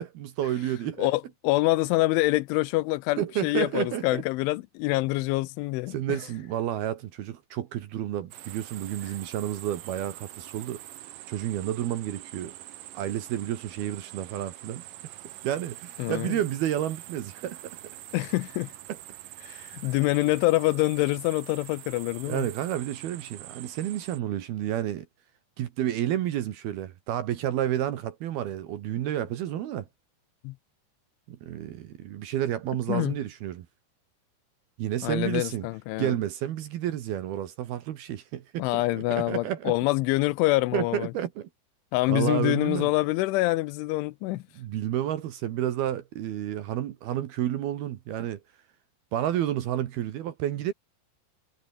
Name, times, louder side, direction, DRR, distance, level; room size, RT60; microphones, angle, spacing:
voice 1, 0.0-1.1 3.2-4.2 5.9-10.8 11.3-12.5 12.9-14.8 15.4-18.0 19.4-19.8 22.3-25.1 25.6-29.9 31.3-33.7 34.8-35.7 36.0-39.7 40.7-41.5 42.1-42.9 44.6-48.4 49.1-50.7, right 11 dB, 65° right, 2.8 m, -30 dB
voice 2, 1.0-6.0 16.0-16.4 18.1-18.7 19.4-22.5 30.4-30.5 32.9-33.2 35.0-36.1 38.6-41.1 41.9-44.4, left 20 dB, 85° left, 3.0 m, -26 dB
sound 1, 8.3-24.2, right 14 dB, 90° right, 1.9 m, -45 dB
omnidirectional pair, 5.7 m